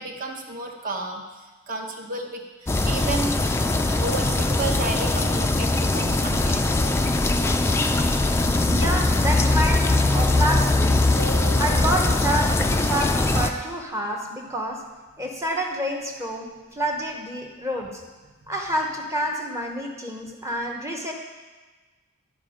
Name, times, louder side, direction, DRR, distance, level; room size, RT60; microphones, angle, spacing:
voice 1, 0.0-3.4 4.0-7.0, right 3 dB, 40° right, 2 dB, 1.0 m, -32 dB
sound 1, 2.7-13.5, left 2 dB, 10° left, 0.3 m, -21 dB
voice 2, 8.6-11.0 11.6-14.8 15.2-16.5 16.7-18.0 18.5-21.1, right 1 dB, 15° right, 1 dB, 0.9 m, -28 dB
sound 2, 11.2-13.4, right 4 dB, 90° right, 2.9 m, -38 dB
12.5 x 5.0 x 5.0 m, 1.3 s
head